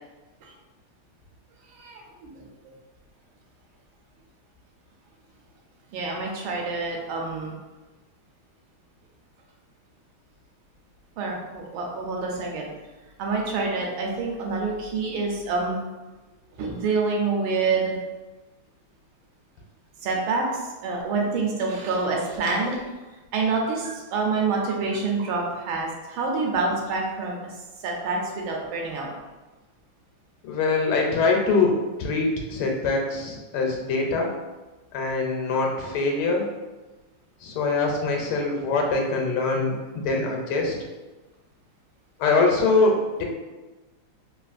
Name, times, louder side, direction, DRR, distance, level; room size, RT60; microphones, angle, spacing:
voice 1, 1.8-2.3 5.9-7.5 11.2-12.7 13.2-15.8 16.6-18.0 20.0-22.9 23.3-27.4 27.8-29.1, right 4 dB, 80° right, -1 dB, 1.4 m, -27 dB
voice 2, 30.4-31.7 32.0-34.3 34.9-36.5 37.4-40.7 42.2-43.2, left 3 dB, 90° left, 1 dB, 1.5 m, -23 dB
3.6 x 2.4 x 2.4 m, 1.2 s
omnidirectional pair, 2.3 m